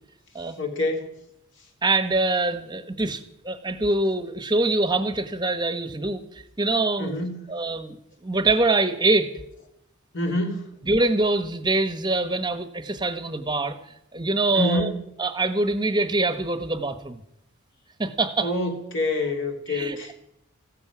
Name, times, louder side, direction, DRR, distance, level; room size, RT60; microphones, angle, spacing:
voice 1, 0.6-1.2 7.0-7.5 10.1-10.7 14.5-15.0 18.4-20.1, left 1 dB, 55° left, 3 dB, 2.8 m, -26 dB
voice 2, 1.8-7.1 7.5-8.0 8.2-9.3 10.9-13.8 14.1-14.9 15.2-17.2 18.0-18.5 19.7-20.0, right 2 dB, 20° right, 9 dB, 1.1 m, -24 dB
15.0 x 13.5 x 6.1 m, 0.79 s
head